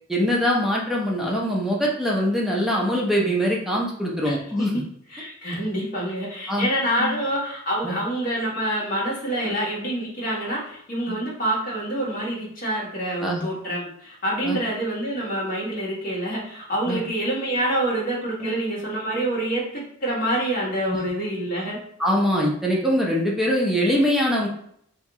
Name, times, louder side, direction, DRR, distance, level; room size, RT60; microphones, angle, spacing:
voice 1, 0.1-4.7 6.5-6.7 7.0-7.2 7.8-8.0 9.4-9.5 11.1-11.2 13.2-13.4 14.4-14.6 16.9-17.0 18.4-18.5 20.9-21.0 22.0-24.5, equal, ahead, -3 dB, 0.6 m, -23 dB
voice 2, 5.1-21.8, right 1 dB, 40° left, -4 dB, 1.3 m, -27 dB
3.0 x 2.7 x 3.5 m, 0.67 s
head